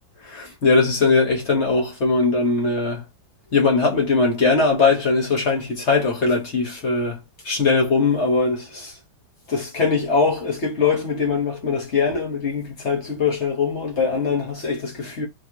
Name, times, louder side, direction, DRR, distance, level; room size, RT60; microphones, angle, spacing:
voice 1, 0.2-3.0 3.5-8.9 9.5-15.3, left 4 dB, 40° left, 1.4 m, -21 dB
3.8 x 3.1 x 2.9 m
omnidirectional pair, 2.1 m